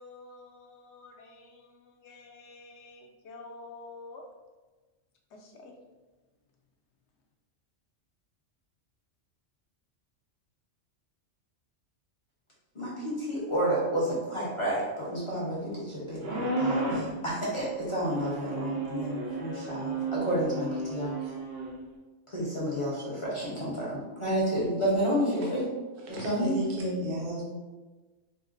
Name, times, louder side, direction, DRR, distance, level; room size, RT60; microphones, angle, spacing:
voice 1, 0.0-4.3 5.3-5.7, left 3 dB, 70° left, 1 dB, 0.8 m, -49 dB
voice 2, 12.7-21.3 22.3-25.7 26.1-26.6, equal, 35° left, -7 dB, 0.6 m, -30 dB
sound 1, 16.2-17.1 18.0-21.7, right 2 dB, 75° right, 1.2 m, -32 dB
voice 3, 26.0-27.5, right 1 dB, 50° right, -2 dB, 0.7 m, -33 dB
4.4 x 2.1 x 2.5 m, 1.2 s
omnidirectional pair, 1.3 m